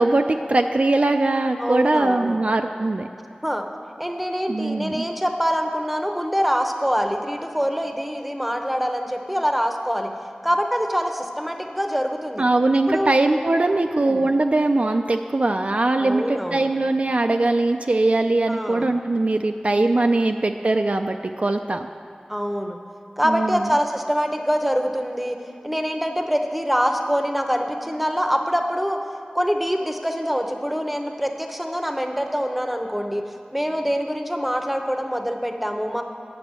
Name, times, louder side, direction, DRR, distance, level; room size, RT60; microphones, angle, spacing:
voice 1, 0.0-3.1 4.5-5.1 12.4-21.9 23.2-23.7, right 2 dB, 50° right, 5 dB, 0.4 m, -21 dB
voice 2, 1.6-2.4 3.4-3.7 4.0-10.1 10.4-12.4 12.9-13.1 13.7-14.3 16.0-16.7 18.5-19.0 22.3-22.8 23.2-25.4 25.6-29.0 29.3-36.0, equal, 5° right, 4 dB, 0.8 m, -25 dB
8.9 x 5.8 x 7.4 m, 2.7 s
wide cardioid pair, 50°, 3 cm